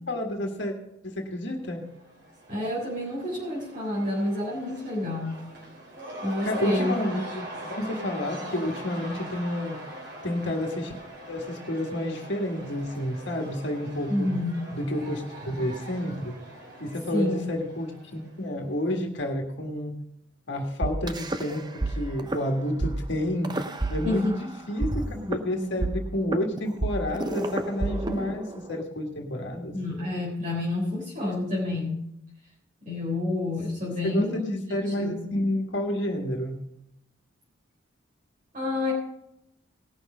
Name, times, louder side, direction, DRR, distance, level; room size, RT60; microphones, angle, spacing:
voice 1, 0.1-0.7 1.0-1.8 6.4-9.8 10.2-10.9 11.3-14.3 14.7-16.4 16.8-19.9 20.5-29.8 34.0-36.6, left 1 dB, 65° left, 2 dB, 1.8 m, -30 dB
Cheering / Crowd, 1.7-18.6, right 1 dB, 55° right, 3.2 m, -42 dB
voice 2, 2.5-5.4 6.2-6.9 14.1-14.6 17.1-17.5 24.0-24.4 29.7-32.1 32.8-34.6 34.9-35.3 38.5-38.9, left 2 dB, 40° right, -5 dB, 3.6 m, -29 dB
sound 1, 20.8-21.9 22.2-22.4 22.8-22.9 23.4-24.4 24.8-28.8, right 2 dB, 20° right, 0.7 m, -30 dB
18.5 x 6.3 x 5.0 m, 0.80 s
head